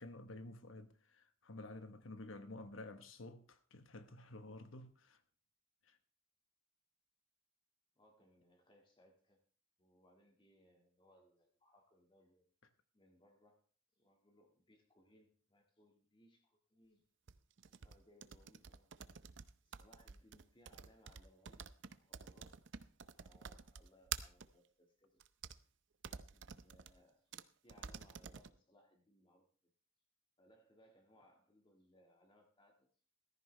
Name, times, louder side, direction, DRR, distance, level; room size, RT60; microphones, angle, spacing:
voice 1, 0.0-5.2 5.8-6.0, left 2 dB, 75° left, 1.2 m, -51 dB
voice 2, 7.9-9.4 9.8-12.5 12.9-13.6 13.9-17.1 17.8-18.9 19.6-22.6 23.2-25.2 26.2-27.3 27.6-29.7 30.4-32.9, equal, 25° left, 1.8 m, -69 dB
sound 1, 17.3-24.5 25.2-25.6 26.0-26.9 27.3-27.4 27.7-28.5, right 8 dB, 65° right, 0.6 m, -49 dB
14.5 x 14.0 x 3.3 m
head